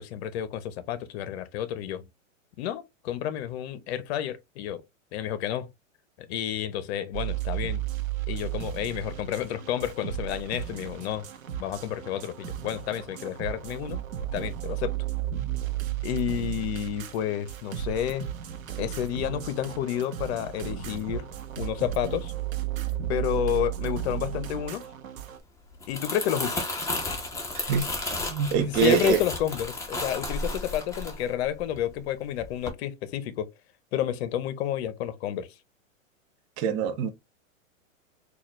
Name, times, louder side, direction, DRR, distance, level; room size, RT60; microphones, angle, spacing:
voice 1, 0.0-2.1 2.6-4.8 5.1-5.7 6.2-7.8 8.3-11.3 11.6-14.0 14.3-15.0 16.0-18.3 18.8-21.2 21.6-22.3 23.1-24.9 25.9-26.6 28.6-33.5 33.9-35.5, left 10 dB, 55° left, 0.8 m, -30 dB
sound 1, 7.1-25.4, right 12 dB, 85° right, 0.8 m, -34 dB
Crumpling crinkling, 25.7-32.0 32.4-32.7, left 2 dB, 5° left, 0.9 m, -33 dB
voice 2, 27.5-29.2 36.6-37.1, right 7 dB, 30° right, 0.6 m, -25 dB
4.0 x 2.4 x 2.9 m
hypercardioid pair, 120°, 40 cm